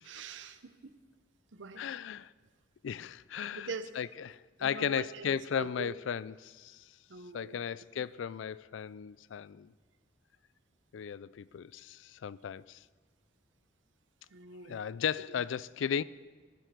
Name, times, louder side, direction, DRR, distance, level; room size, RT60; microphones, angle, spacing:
voice 1, 0.0-1.0 1.5-1.9 3.5-3.9 4.6-6.0 7.1-7.6 8.0-8.1 14.3-14.8 15.3-15.4, right 4 dB, 85° right, 0.7 m, -44 dB
voice 2, 1.8-2.3 2.8-3.7 4.0-6.8 7.3-9.7 10.9-12.8 14.7-16.0, left 8 dB, 90° left, 0.4 m, -35 dB
18.5 x 7.6 x 5.1 m
head